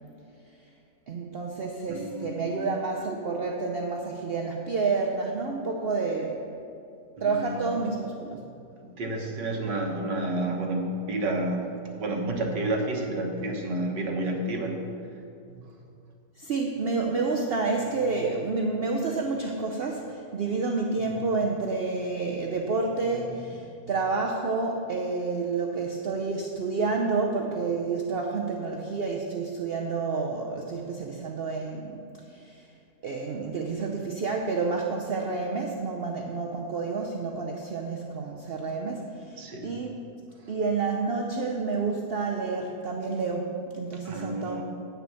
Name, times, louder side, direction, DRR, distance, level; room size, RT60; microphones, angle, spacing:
voice 1, 1.1-6.4 7.2-8.4 16.4-32.0 32.3-32.7 33.0-40.0 40.5-44.6, right 4 dB, 65° right, 1 dB, 0.5 m, -29 dB
voice 2, 1.9-2.7 7.2-7.7 8.8-14.8 15.5-15.6 39.4-39.8 44.1-44.6, right 2 dB, 85° right, 1 dB, 1.8 m, -30 dB
8.9 x 6.8 x 6.3 m, 2.6 s
omnidirectional pair, 1.8 m